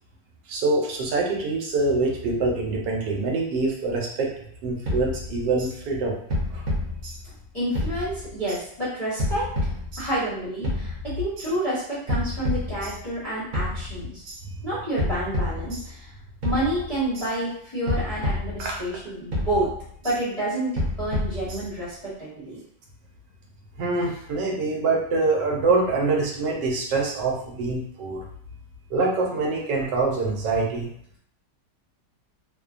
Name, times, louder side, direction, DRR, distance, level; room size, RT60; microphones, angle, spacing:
voice 1, 0.5-4.3 4.6-6.1 6.5-6.6 14.4-14.6 18.6-18.7 23.8-28.3 28.9-30.9, right 3 dB, 80° right, -1 dB, 1.2 m, -25 dB
sound 1, 4.9-5.7 6.3-7.5 7.7-8.6 9.2-10.3 10.6-11.5 12.1-13.2 13.5-14.4 15.0-16.1 16.4-17.3 17.9-19.0 19.3-20.2 20.8-21.9, left 1 dB, 60° right, 1.1 m, -29 dB
voice 2, 7.5-14.2 14.6-16.1 16.4-19.7 20.0-20.7 21.0-22.6, right 1 dB, 30° left, -12 dB, 0.7 m, -29 dB
2.9 x 2.1 x 2.4 m, 0.66 s
omnidirectional pair, 1.9 m